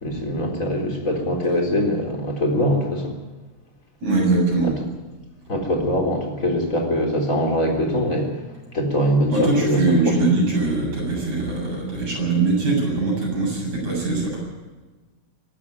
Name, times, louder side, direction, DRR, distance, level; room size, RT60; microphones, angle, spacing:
voice 1, 0.0-3.2 4.6-4.7 5.5-8.4 8.7-10.2, equal, 25° left, 1 dB, 4.0 m, -22 dB
voice 2, 4.0-4.8 9.3-14.5, right 3 dB, 60° right, -2 dB, 9.2 m, -22 dB
23.5 x 12.0 x 9.5 m, 1.3 s
omnidirectional pair, 3.5 m